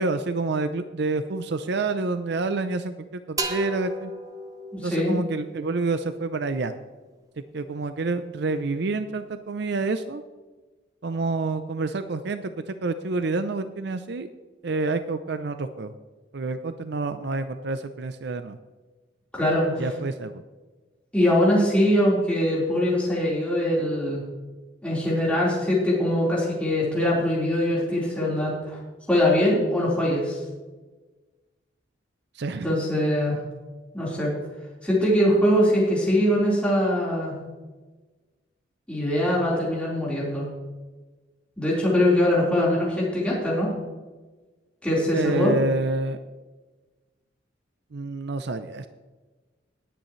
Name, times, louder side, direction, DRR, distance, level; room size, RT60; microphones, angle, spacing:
voice 1, 0.0-4.1 4.8-6.7 7.5-10.2 11.0-14.3 14.6-15.9 16.3-18.6 19.8-20.4 32.3-32.7 45.1-46.2 47.9-48.9, right 3 dB, 60° right, 10 dB, 0.5 m, -28 dB
sound 1, 3.4-7.0, right 2 dB, 20° right, 0.8 m, -36 dB
voice 2, 4.7-5.2 19.3-19.9 21.1-24.2 24.8-28.8 29.1-30.4 32.6-33.4 33.9-34.3 34.8-37.4 38.9-40.5 41.6-43.7 44.8-45.5, left 1 dB, 5° left, -7 dB, 4.0 m, -22 dB
20.0 x 9.1 x 3.2 m, 1.3 s
head